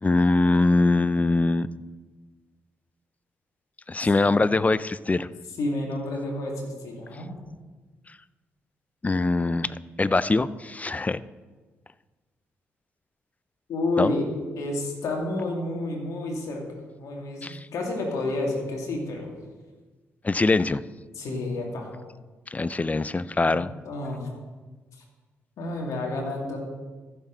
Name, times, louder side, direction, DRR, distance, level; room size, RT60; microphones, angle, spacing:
voice 1, 0.0-1.7 3.9-5.3 9.0-11.2 14.0-14.1 17.4-17.7 20.2-20.8 22.5-23.7, left 3 dB, 25° left, 17 dB, 0.5 m, -23 dB
voice 2, 5.6-7.3 13.7-14.3 14.6-16.6 17.0-19.4 21.2-21.9 23.8-24.3 25.6-26.6, left 2 dB, 70° left, 0 dB, 2.5 m, -30 dB
15.0 x 7.2 x 4.0 m, 1.3 s
hypercardioid pair, 45°, 6 cm